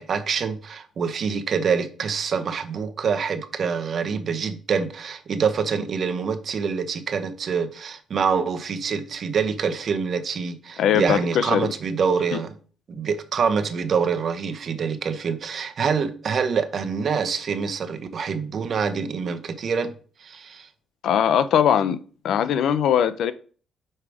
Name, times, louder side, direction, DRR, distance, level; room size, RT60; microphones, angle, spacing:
voice 1, 0.0-12.5 13.0-19.9 20.2-20.7, right 6 dB, 55° right, 1.0 m, -26 dB
voice 2, 10.8-11.7 21.0-22.0 22.2-23.3, left 9 dB, 75° left, 0.6 m, -20 dB
5.6 x 5.0 x 4.7 m
cardioid pair, 90°, 0 cm